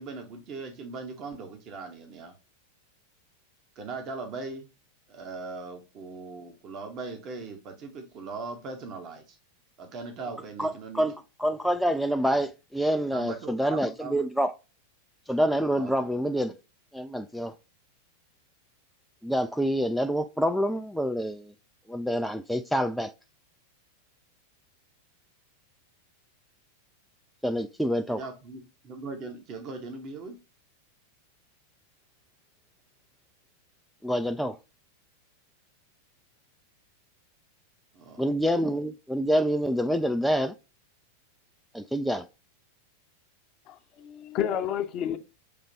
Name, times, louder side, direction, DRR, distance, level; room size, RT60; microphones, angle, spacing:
voice 1, 0.0-2.3 3.8-4.7 5.1-9.4 9.8-11.1 13.1-14.2 15.8-16.1 28.1-30.3 37.9-38.3, right 3 dB, 35° right, 1.0 m, -39 dB
voice 2, 10.6-14.5 15.3-16.5 16.9-17.5 19.2-21.5 21.9-23.1 27.4-28.2 34.0-34.6 38.2-40.5 41.7-42.3, equal, ahead, 0.3 m, -27 dB
voice 3, 43.7-45.2, left 9 dB, 35° left, 0.7 m, -30 dB
6.7 x 2.9 x 2.8 m
figure-of-eight pair, 90°, 0 cm